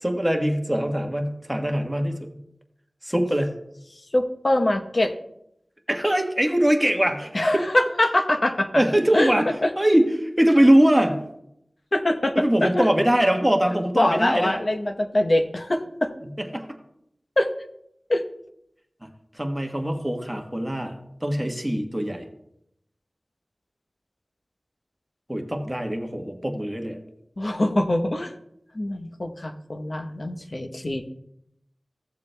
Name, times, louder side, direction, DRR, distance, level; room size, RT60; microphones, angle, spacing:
voice 1, 0.0-2.3 3.0-3.6 5.9-7.6 8.7-9.5 9.8-11.3 12.3-14.6 16.2-16.6 19.0-19.1 19.4-20.9 21.2-22.2 25.3-27.0, right 1 dB, 10° right, 3 dB, 1.3 m, -22 dB
voice 2, 4.1-5.1 7.3-8.8 9.1-9.3 9.6-9.7 11.9-12.9 13.9-16.1 17.4-17.5 18.1-18.2 27.4-28.3 28.7-31.1, left 1 dB, 55° left, 6 dB, 0.9 m, -23 dB
15.0 x 7.2 x 2.2 m, 0.77 s
wide cardioid pair, 50°, 0 cm